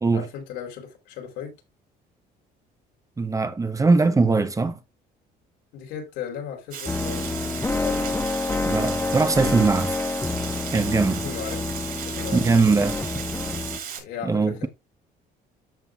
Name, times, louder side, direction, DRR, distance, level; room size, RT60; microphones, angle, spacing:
voice 1, 0.1-1.5 5.7-7.3 7.8-8.2 11.2-13.3 14.0-14.7, left 7 dB, 85° left, 3.7 m, -37 dB
voice 2, 3.2-4.8 8.6-10.0 10.7-11.2 12.3-13.0 14.2-14.7, right 3 dB, 20° right, 1.0 m, -21 dB
Water, 6.7-14.0, right 7 dB, 60° right, 5.1 m, -35 dB
sound 1, 6.9-13.8, left 3 dB, 15° left, 0.7 m, -28 dB
13.0 x 5.5 x 2.4 m
cardioid pair, 110°, 17 cm